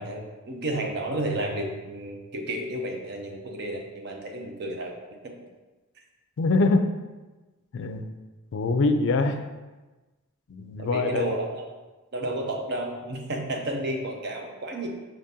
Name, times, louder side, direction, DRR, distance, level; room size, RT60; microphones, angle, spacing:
voice 1, 0.0-4.9 5.2-5.3 10.8-11.6 12.1-14.9, right 1 dB, 50° right, 2 dB, 0.6 m, -31 dB
voice 2, 6.4-6.8 7.7-8.1 8.5-9.4 10.5-11.3, left 3 dB, 60° left, 7 dB, 0.4 m, -23 dB
5.1 x 3.6 x 2.7 m, 1.2 s
head